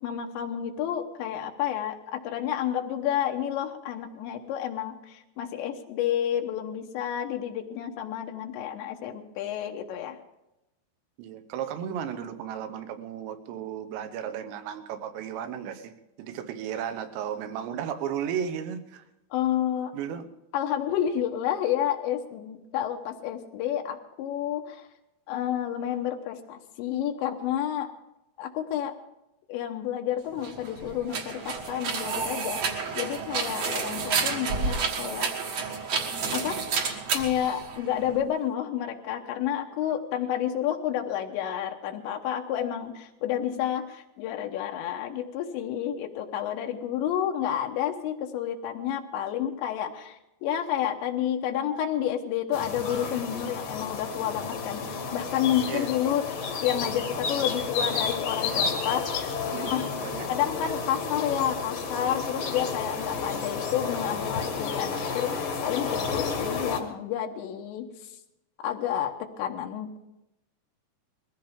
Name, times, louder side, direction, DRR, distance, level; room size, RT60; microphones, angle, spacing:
voice 1, 0.0-10.2 19.3-19.9 20.5-24.9 25.3-27.9 28.4-29.0 29.5-35.3 36.3-36.7 37.1-56.2 56.6-59.1 59.7-59.9 60.3-67.9 68.6-70.0, left 10 dB, 80° left, 4 dB, 3.2 m, -30 dB
voice 2, 11.2-15.9 16.2-19.0 19.9-20.3 55.7-55.9 59.5-60.3 60.7-60.8, right 8 dB, 80° right, 9 dB, 3.2 m, -34 dB
sound 1, 30.3-38.2, right 5 dB, 55° right, 2.0 m, -30 dB
sound 2, 52.5-66.8, left 5 dB, 55° left, 1.8 m, -31 dB
21.0 x 16.0 x 3.6 m, 0.89 s
omnidirectional pair, 5.1 m